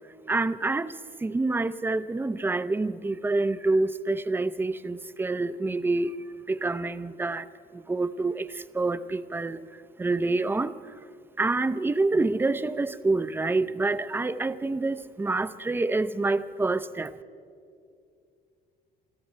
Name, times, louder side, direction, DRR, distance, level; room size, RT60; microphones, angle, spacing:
voice 1, 0.3-6.2 6.5-9.6 10.0-10.8 11.4-17.2, right 3 dB, 15° right, 0.5 m, -27 dB
23.5 x 14.0 x 4.5 m
cardioid pair, 110°, 17 cm